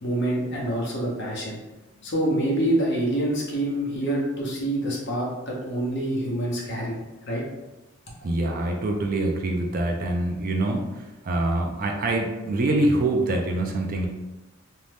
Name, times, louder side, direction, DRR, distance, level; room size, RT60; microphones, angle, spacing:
voice 1, 0.0-1.6 2.0-7.4, right 1 dB, 55° left, -2 dB, 0.7 m, -26 dB
voice 2, 8.2-14.1, right 2 dB, 40° right, 2 dB, 0.3 m, -25 dB
2.6 x 2.1 x 3.2 m, 1.0 s
head